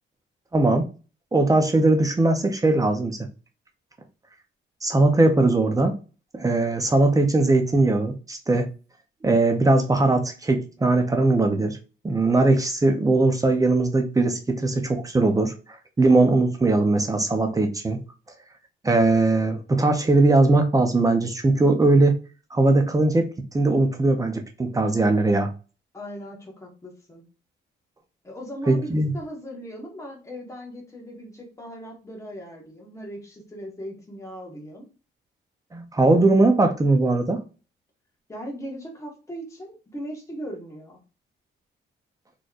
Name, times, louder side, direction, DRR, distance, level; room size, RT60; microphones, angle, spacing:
voice 1, 0.5-0.9 1.3-3.3 4.8-6.0 6.3-8.7 9.2-11.8 12.0-15.5 16.0-18.0 18.8-22.2 22.5-25.5 28.7-29.1 35.7-37.4, right 2 dB, 15° right, 0.5 m, -20 dB
voice 2, 25.9-27.2 28.2-34.9 38.3-41.0, equal, 15° left, 1.3 m, -38 dB
4.3 x 3.0 x 2.4 m
cardioid pair, 140°, 21 cm